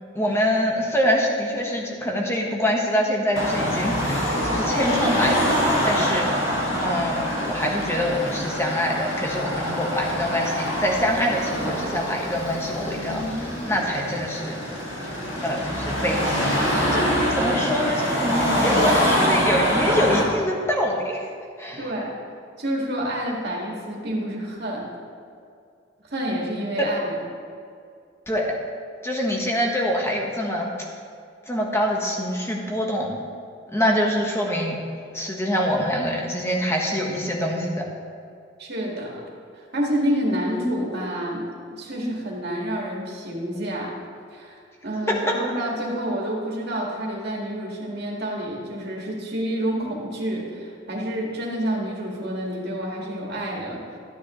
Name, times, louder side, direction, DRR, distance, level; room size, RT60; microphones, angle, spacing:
voice 1, 0.1-6.3 6.8-14.6 15.4-16.5 16.9-21.2 21.6-21.9 28.3-28.4 29.0-30.7 31.5-33.2 33.7-34.8 35.1-37.8 45.1-45.4, equal, 15° left, -1 dB, 1.3 m, -25 dB
Car passing by / Traffic noise roadway noise / Engine, 3.4-20.2, equal, 65° left, 1.9 m, -24 dB
voice 2, 21.8-22.1 22.6-24.9 26.1-27.2 38.6-39.2 39.6-43.9 44.3-54.0, equal, 55° right, -2 dB, 2.0 m, -28 dB
13.0 x 9.4 x 3.1 m, 2.4 s
head